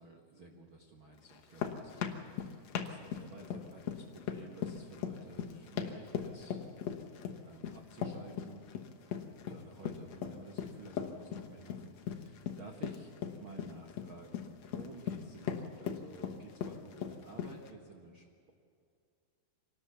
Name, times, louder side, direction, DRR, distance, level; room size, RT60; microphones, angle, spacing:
voice 1, 0.0-6.6 7.4-8.6 9.1-13.1 13.4-18.5, right 3 dB, 65° right, 1 dB, 1.2 m, -53 dB
sound 1, 1.3-17.7, left 8 dB, 75° left, 1.5 m, -39 dB
25.5 x 18.5 x 6.9 m, 2.4 s
omnidirectional pair, 4.8 m